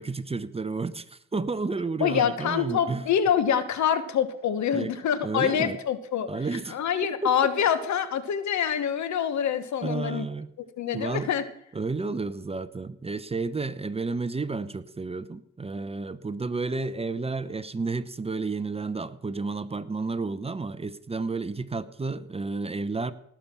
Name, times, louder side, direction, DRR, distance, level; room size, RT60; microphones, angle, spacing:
voice 1, 0.0-3.1 4.7-4.9 5.2-5.8 6.3-6.8 7.2-7.3 7.6-7.7 9.8-10.5 10.9-11.3 11.7-23.1, right 3 dB, 20° right, 14 dB, 0.8 m, -31 dB
voice 2, 2.0-6.3 6.7-10.3 10.8-11.4, left 8 dB, 70° left, 12 dB, 1.5 m, -25 dB
18.5 x 7.1 x 6.1 m, 0.78 s
cardioid pair, 90°, 30 cm